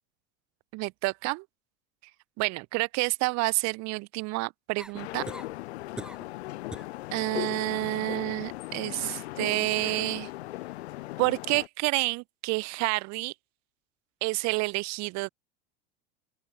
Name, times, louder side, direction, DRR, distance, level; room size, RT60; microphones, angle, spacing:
voice 1, 0.7-1.4 2.4-5.3 7.1-10.3 11.2-13.3 14.2-15.3, right 25 dB, 60° right, 5.1 m, -29 dB
sound 1, 4.8-5.5 6.0-6.3 6.7-7.0 7.4-7.8 9.6-9.7, right 1 dB, 5° right, 3.4 m, -42 dB
sound 2, 5.0-11.7, left 18 dB, 80° left, 1.7 m, -38 dB
open air
supercardioid pair, 115°, 32 cm